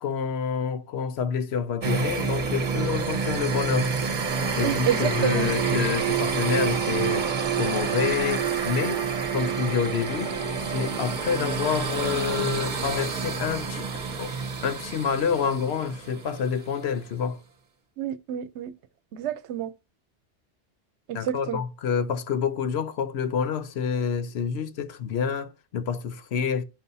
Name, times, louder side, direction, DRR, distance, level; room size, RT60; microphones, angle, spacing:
voice 1, 0.0-3.9 4.6-7.3 7.6-9.0 9.3-10.3 10.7-13.9 14.2-14.4 14.6-17.4 21.1-26.6, left 7 dB, 75° left, 0.9 m, -28 dB
sound 1, 1.8-16.6, right 5 dB, 45° right, 1.0 m, -28 dB
voice 2, 4.6-5.5 18.0-18.7 19.1-19.7 21.1-21.6, right 10 dB, 85° right, 0.9 m, -29 dB
10.5 x 5.4 x 2.6 m
omnidirectional pair, 1.1 m